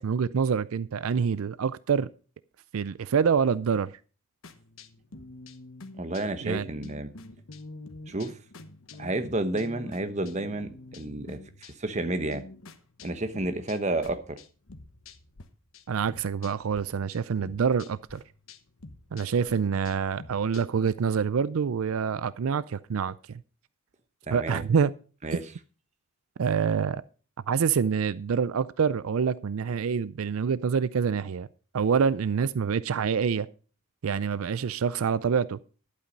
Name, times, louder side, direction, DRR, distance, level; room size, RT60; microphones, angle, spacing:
voice 1, 0.0-2.1 2.7-3.9 6.4-6.7 15.9-18.2 19.1-23.1 24.3-24.9 26.4-27.0 27.5-31.5 31.7-33.5 34.0-35.6, right 6 dB, 85° right, 0.4 m, -26 dB
sound 1, 4.4-15.5 15.7-16.8 17.1-20.9, left 2 dB, 75° left, 1.2 m, -47 dB
voice 2, 6.0-7.1 8.1-8.4 9.0-11.4 11.8-12.4 13.0-14.4 24.3-24.6 25.2-25.4, right 2 dB, 35° right, 1.0 m, -30 dB
11.5 x 8.4 x 5.3 m
head